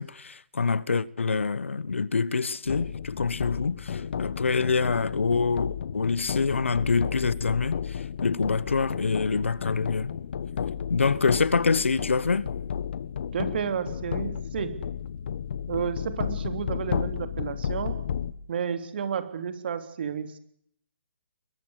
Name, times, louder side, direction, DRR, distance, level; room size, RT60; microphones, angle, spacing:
voice 1, 0.0-10.1 10.9-12.5, left 4 dB, 80° left, 1.3 m, -26 dB
sound 1, 2.7-18.3, left 8 dB, 55° left, 1.4 m, -33 dB
voice 2, 13.3-14.8 15.7-18.0 18.5-20.4, right 7 dB, 55° right, 3.3 m, -31 dB
22.5 x 22.0 x 8.2 m
hypercardioid pair, 145°, 7 cm